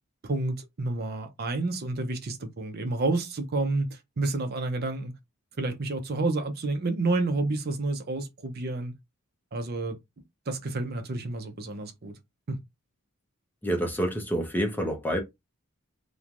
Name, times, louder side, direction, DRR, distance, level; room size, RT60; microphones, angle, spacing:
voice 1, 0.2-5.1 5.6-8.9 9.5-10.0 10.5-12.2 12.5-12.6, right 2 dB, 45° right, 0.5 m, -29 dB
voice 2, 13.6-15.2, equal, 10° left, 0.5 m, -27 dB
3.0 x 2.1 x 2.4 m
head